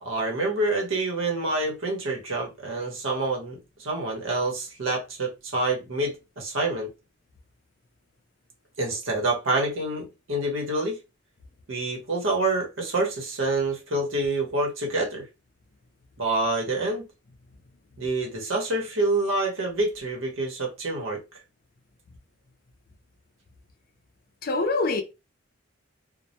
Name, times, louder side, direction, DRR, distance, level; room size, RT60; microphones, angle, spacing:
voice 1, 0.0-6.9 8.8-11.0 11.7-15.3 16.2-17.0 18.0-21.2, right 2 dB, 85° right, 0.9 m, -27 dB
voice 2, 24.4-25.0, left 3 dB, 45° left, 0.4 m, -25 dB
2.1 x 2.1 x 2.7 m
head